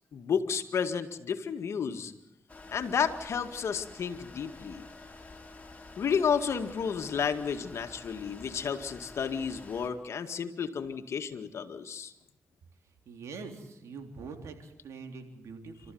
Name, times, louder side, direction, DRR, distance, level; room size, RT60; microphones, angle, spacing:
voice 1, 0.1-2.1 2.7-4.9 6.0-12.1, left 6 dB, 70° left, 7 dB, 2.0 m, -31 dB
sound 1, 2.5-9.9, left 3 dB, 25° left, 4.9 m, -49 dB
voice 2, 13.1-15.9, right 4 dB, 80° right, 5 dB, 3.6 m, -44 dB
28.5 x 14.0 x 9.4 m, 0.87 s
cardioid pair, 55°, 5 cm